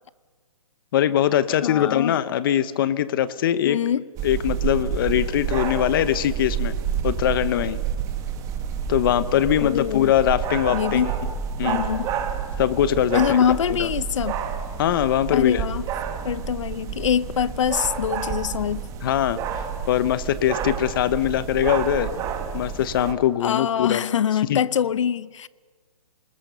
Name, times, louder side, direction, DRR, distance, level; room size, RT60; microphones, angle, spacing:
voice 1, 0.9-3.8 4.2-6.7 7.0-7.8 8.9-11.1 11.6-11.8 12.6-13.4 13.8-13.9 14.8-15.6 19.0-22.1 22.5-24.0 24.5-24.6, left 11 dB, 35° left, 1.0 m, -22 dB
voice 2, 1.5-2.2 3.6-4.0 9.6-10.1 10.7-11.1 11.6-12.1 13.1-14.4 15.3-15.8 16.2-18.9 23.4-25.5, left 8 dB, 55° left, 0.8 m, -24 dB
sound 1, 4.2-23.1, right 7 dB, 15° right, 1.7 m, -29 dB
27.0 x 20.0 x 6.8 m
hypercardioid pair, 150°, 19 cm